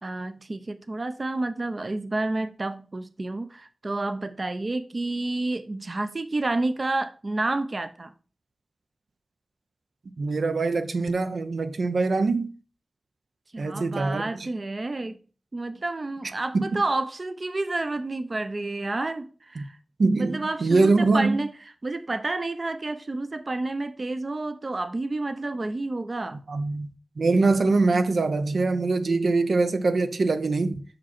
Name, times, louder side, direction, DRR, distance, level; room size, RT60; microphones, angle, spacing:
voice 1, 0.0-8.1 13.5-15.2 15.5-19.8 20.2-21.5 21.8-26.4, right 2 dB, 45° right, 0.5 m, -30 dB
voice 2, 10.2-12.5 13.6-14.5 16.5-16.8 19.6-19.7 20.0-21.4 26.5-26.9 27.2-30.8, right 3 dB, 80° right, 0.6 m, -23 dB
5.7 x 5.1 x 4.2 m
wide cardioid pair, 70°, 0 cm